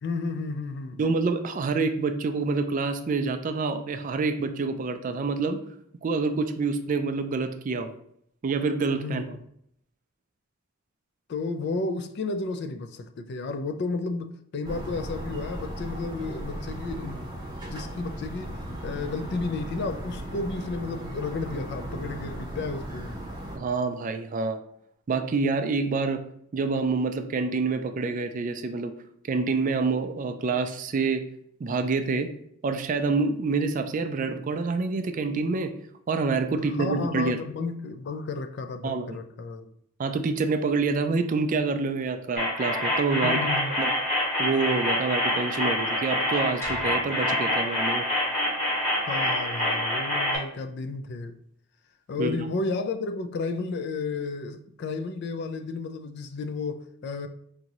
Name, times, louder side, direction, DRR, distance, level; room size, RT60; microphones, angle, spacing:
voice 1, 0.0-1.0 9.0-9.4 11.3-17.2 17.7-18.6 18.8-23.2 36.6-39.7 43.2-43.8 48.9-51.4 52.1-57.3, left 3 dB, 50° left, 0.3 m, -32 dB
voice 2, 1.0-5.6 6.0-7.9 8.4-9.2 23.5-24.6 25.1-26.2 26.5-28.9 29.3-31.2 31.6-32.3 32.6-35.7 36.1-37.4 38.8-39.2 40.0-43.4 43.8-43.9 44.4-48.0 52.2-52.5, right 4 dB, 40° right, 0.3 m, -27 dB
sound 1, 14.6-23.6, right 1 dB, 20° right, 0.7 m, -36 dB
sound 2, 42.4-50.4, left 1 dB, 35° left, 1.5 m, -26 dB
sound 3, 46.6-48.6, equal, 10° left, 1.0 m, -45 dB
4.8 x 2.6 x 2.9 m
head